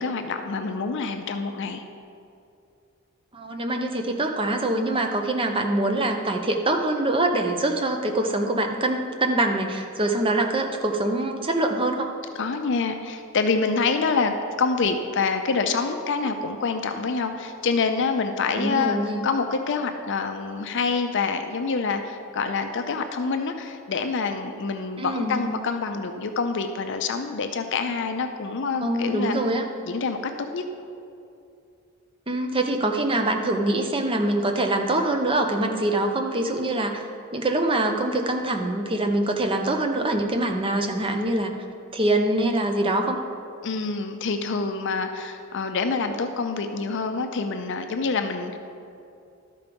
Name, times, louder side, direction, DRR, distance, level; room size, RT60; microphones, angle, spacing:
voice 1, 0.0-1.8 12.4-19.0 19.2-29.4 29.8-30.2 30.5-30.6 43.6-48.6, left 4 dB, 55° left, 6 dB, 0.5 m, -26 dB
voice 2, 3.3-12.1 18.6-19.2 25.0-25.4 28.8-29.6 32.3-37.0 37.3-41.6 41.9-43.2, right 1 dB, 25° right, 4 dB, 0.7 m, -24 dB
12.5 x 4.6 x 5.2 m, 2.5 s
head